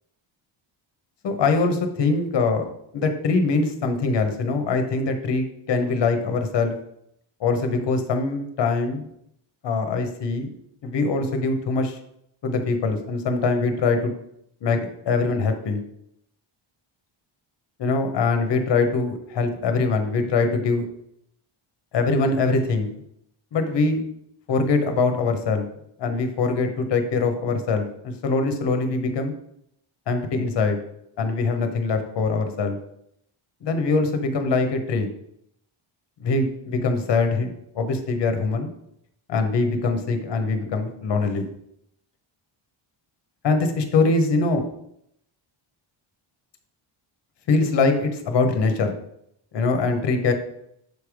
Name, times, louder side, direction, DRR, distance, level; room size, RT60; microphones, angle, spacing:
voice 1, 1.2-2.6 2.9-6.8 7.4-9.1 9.6-10.5 10.8-12.0 12.4-14.1 14.6-14.8 15.1-15.8 17.8-20.8 21.9-22.9 23.5-24.0 24.5-25.7 26.0-29.3 30.1-30.8 31.2-32.8 33.6-35.1 36.2-37.5 37.7-38.7 39.3-41.5 43.4-44.6 47.5-48.9 49.5-50.3, left 3 dB, 55° left, 6 dB, 1.0 m, -23 dB
6.7 x 3.3 x 4.9 m, 0.74 s
wide cardioid pair, 155°, 50 cm